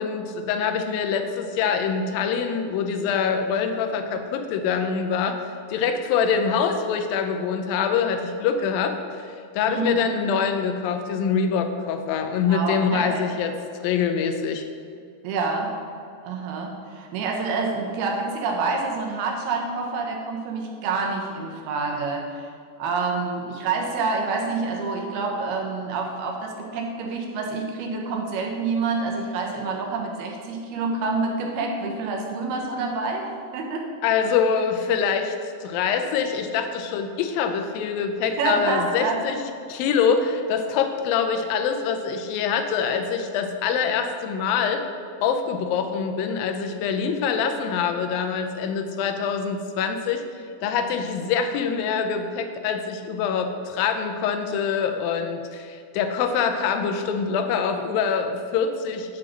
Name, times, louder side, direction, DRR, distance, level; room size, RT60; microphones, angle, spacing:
voice 1, 0.0-5.4 5.7-13.5 13.8-14.7 34.0-35.4 35.6-39.4 39.7-44.8 45.2-50.2 50.6-59.2, left 6 dB, 80° left, 6 dB, 2.3 m, -24 dB
voice 2, 9.7-10.0 12.5-13.2 15.2-15.7 16.2-22.5 22.8-33.9 38.4-39.2, right 4 dB, 85° right, 1 dB, 3.1 m, -27 dB
7.7 x 5.1 x 7.3 m, 2.3 s
omnidirectional pair, 4.3 m